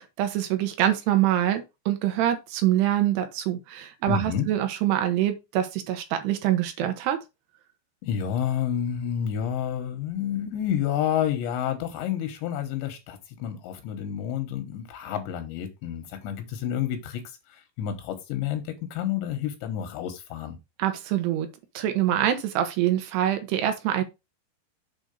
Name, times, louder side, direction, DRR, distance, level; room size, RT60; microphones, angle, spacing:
voice 1, 0.2-7.2 20.8-21.5 21.7-24.0, right 12 dB, 75° right, 2.9 m, -25 dB
voice 2, 4.1-4.5 8.0-17.2 17.5-20.6, left 9 dB, 85° left, 3.3 m, -29 dB
7.7 x 3.5 x 5.2 m
omnidirectional pair, 5.2 m